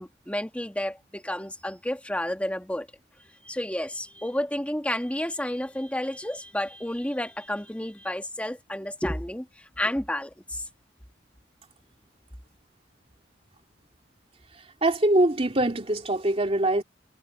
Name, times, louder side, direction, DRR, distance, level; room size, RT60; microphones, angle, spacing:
voice 1, 0.0-2.9 3.4-9.5 9.8-10.6, left 1 dB, 5° left, 1.7 m, -31 dB
voice 2, 14.8-16.8, right 1 dB, 35° right, 2.8 m, -23 dB
head